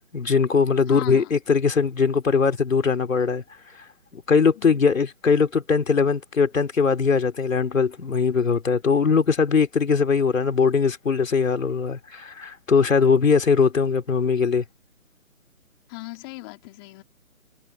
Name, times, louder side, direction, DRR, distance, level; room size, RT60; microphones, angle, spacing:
voice 1, 0.0-3.4 4.1-14.6, left 5 dB, 65° left, 4.0 m, -21 dB
voice 2, 0.9-1.3 4.5-4.8 15.9-17.0, left 23 dB, 15° left, 3.2 m, -38 dB
hypercardioid pair, 165°, 43 cm